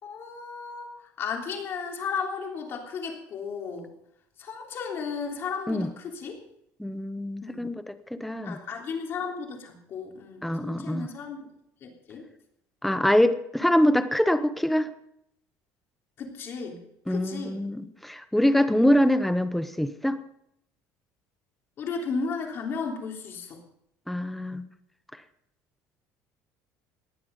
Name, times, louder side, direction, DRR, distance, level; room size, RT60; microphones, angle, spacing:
voice 1, 0.0-0.9 1.2-3.9 4.4-6.4 7.4-7.7 8.4-11.5 11.8-12.3 16.2-16.8 17.1-17.6 21.8-23.6, left 5 dB, 35° left, 2 dB, 3.4 m, -34 dB
voice 2, 6.8-8.6 10.4-11.1 12.8-14.9 17.1-20.2 24.1-24.6, left 1 dB, ahead, 11 dB, 0.8 m, -24 dB
18.5 x 12.0 x 5.5 m, 0.76 s
cardioid pair, 170°, 7 cm